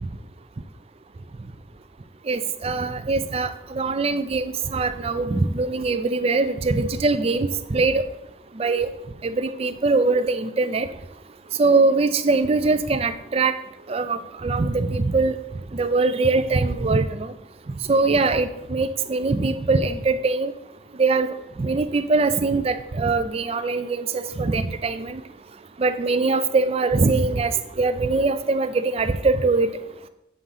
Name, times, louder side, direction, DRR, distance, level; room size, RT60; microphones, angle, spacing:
voice 1, 2.3-3.5 3.8-4.4 4.7-8.0 8.6-8.9 9.4-10.9 11.6-13.5 13.9-14.2 14.4-15.3 15.8-17.0 17.9-20.5 21.0-21.3 21.6-24.0 24.4-25.1 25.8-27.5 27.8-29.7, right 3 dB, 30° right, 11 dB, 0.4 m, -22 dB
7.7 x 3.7 x 5.5 m, 0.85 s
head